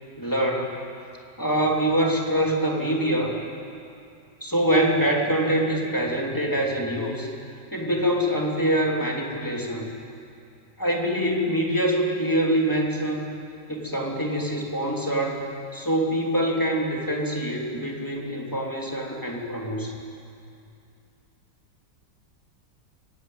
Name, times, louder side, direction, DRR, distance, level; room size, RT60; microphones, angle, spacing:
voice 1, 0.2-0.8 1.4-3.4 4.4-7.3 7.7-9.9 10.8-13.3 13.7-15.4 15.7-20.0, right 1 dB, 10° left, -1 dB, 2.7 m, -24 dB
25.5 x 15.5 x 9.2 m, 2.5 s
omnidirectional pair, 1.9 m